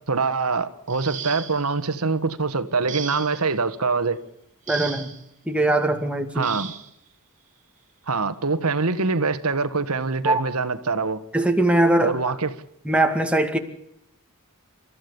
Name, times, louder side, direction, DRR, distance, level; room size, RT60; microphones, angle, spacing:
voice 1, 0.1-4.2 6.4-6.7 8.1-11.2 12.0-12.5, right 4 dB, 90° right, 1.6 m, -24 dB
sound 1, 0.9-1.8 2.9-3.5 4.7-5.2 6.4-6.9 8.1-8.2 8.8-9.0, right 8 dB, 35° right, 2.6 m, -36 dB
voice 2, 4.7-5.1 5.5-6.5 10.2-10.4 11.3-12.3 12.8-13.6, right 1 dB, 5° right, 2.2 m, -21 dB
29.5 x 14.5 x 7.0 m
head